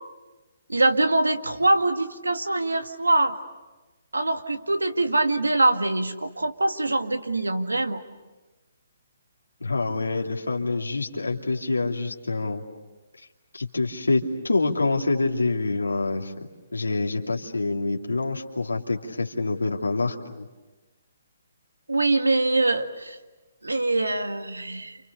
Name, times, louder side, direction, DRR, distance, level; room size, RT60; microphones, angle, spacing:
voice 1, 0.7-3.4 4.1-8.0 21.9-23.2 23.6-25.0, right 2 dB, 90° right, 7 dB, 1.9 m, -23 dB
voice 2, 9.6-12.6 13.2-13.3 13.5-16.3 16.7-20.5, left 3 dB, 85° left, 1 dB, 2.7 m, -26 dB
30.0 x 28.5 x 6.9 m, 1.2 s
figure-of-eight pair, 135°, 0 cm